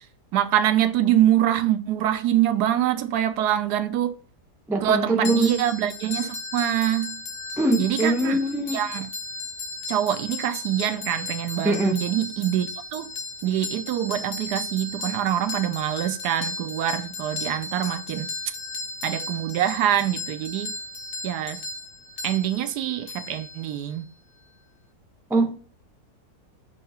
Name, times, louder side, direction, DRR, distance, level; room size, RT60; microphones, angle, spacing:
voice 1, 0.3-4.1 4.8-7.2 7.8-8.4 8.7-9.1 9.9-13.1 13.4-18.3 19.0-20.7 21.2-21.6 22.2-24.0, right 11 dB, 85° right, 1.2 m, -24 dB
voice 2, 4.7-5.5 7.6-8.8 11.6-12.0 25.3-25.5, right 2 dB, 5° right, 0.3 m, -22 dB
sound 1, 5.2-24.0, left 3 dB, 75° left, 1.4 m, -36 dB
6.9 x 2.8 x 5.5 m
omnidirectional pair, 1.7 m